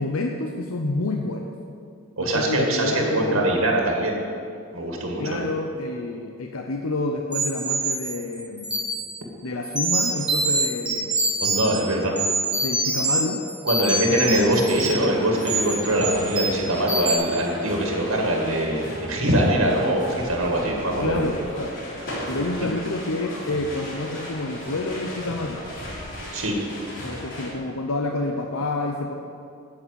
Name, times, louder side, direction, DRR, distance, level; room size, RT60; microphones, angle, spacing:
voice 1, 0.0-1.5 2.2-3.5 5.2-8.8 9.4-11.2 12.6-13.4 21.0-21.8 22.3-25.6 27.0-29.2, left 2 dB, 85° left, 2 dB, 0.8 m, -28 dB
voice 2, 2.2-4.2 4.7-5.5 11.4-12.2 13.6-21.3 26.3-26.6, right 1 dB, 80° right, 0 dB, 2.1 m, -23 dB
sound 1, 7.3-9.1 9.6-11.8 12.2-13.2 13.5-15.0 15.4-15.7 16.0-16.6 16.9-17.1, right 2 dB, 5° right, 2.8 m, -25 dB
sound 2, 13.9-27.5, equal, 60° left, 3.4 m, -36 dB
9.8 x 8.6 x 8.1 m, 2.5 s
head